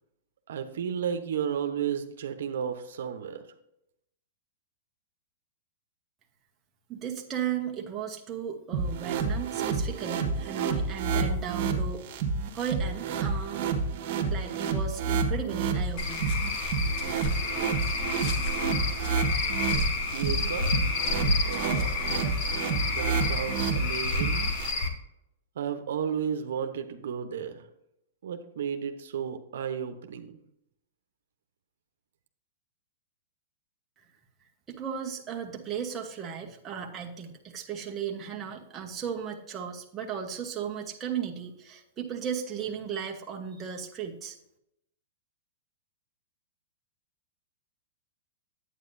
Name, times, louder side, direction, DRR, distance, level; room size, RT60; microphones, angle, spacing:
voice 1, 0.5-3.4 20.1-20.8 21.4-22.0 22.9-24.4 25.6-27.6 28.2-30.4, right 8 dB, 75° right, 7 dB, 0.9 m, -33 dB
voice 2, 6.9-12.0 12.5-13.6 14.3-16.3 34.7-44.4, right 7 dB, 20° right, 0 dB, 1.1 m, -35 dB
sound 1, 8.7-24.7, right 4 dB, 50° right, 1.5 m, -29 dB
Cricket / Frog, 16.0-24.9, left 3 dB, 45° left, 1.4 m, -30 dB
9.5 x 8.7 x 2.7 m, 0.80 s
hypercardioid pair, 155°, 0 cm